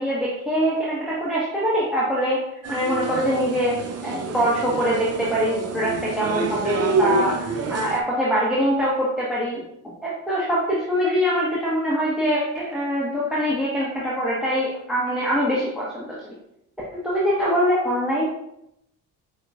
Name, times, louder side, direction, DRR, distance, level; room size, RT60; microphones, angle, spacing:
voice 1, 0.0-9.6 10.0-16.2 17.0-18.2, equal, ahead, -7 dB, 1.2 m, -23 dB
sound 1, 2.6-8.0, right 3 dB, 35° right, 0.6 m, -27 dB
5.4 x 3.1 x 2.4 m, 0.79 s
hypercardioid pair, 50°, 44 cm